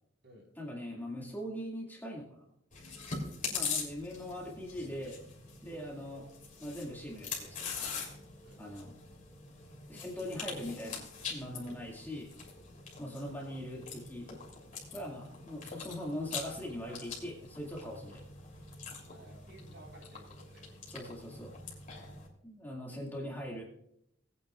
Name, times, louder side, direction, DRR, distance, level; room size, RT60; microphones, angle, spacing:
voice 1, 0.6-2.4 3.5-5.2 5.6-6.2 6.6-7.7 8.6-8.9 9.9-12.3 13.0-14.4 14.9-18.2 20.9-21.6 22.4-23.6, equal, 10° left, -2 dB, 2.2 m, -41 dB
Chewing mastication, 2.7-22.3, left 5 dB, 45° left, 3.2 m, -43 dB
voice 2, 5.6-6.1 8.4-8.6 9.9-10.9 11.6-11.8 18.0-18.2 19.0-20.8, equal, 60° right, 0 dB, 4.2 m, -55 dB
20.0 x 9.3 x 2.4 m, 0.74 s
head